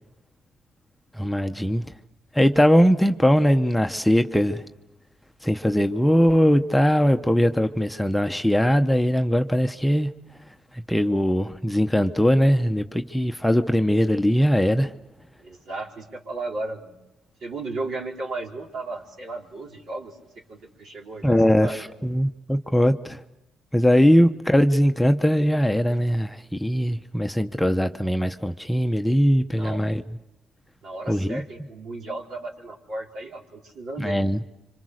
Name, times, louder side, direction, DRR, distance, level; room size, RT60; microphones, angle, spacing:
voice 1, 1.2-1.8 2.3-4.6 5.4-10.1 10.9-14.9 21.2-23.2 23.7-30.0 31.1-31.4 34.0-34.4, equal, 5° left, 0.9 m, -20 dB
voice 2, 15.4-17.0 17.4-20.2 20.5-21.8 29.5-29.8 30.8-34.2, right 2 dB, 70° right, 4.6 m, -35 dB
27.0 x 26.0 x 6.5 m
cardioid pair, 90°, 0 cm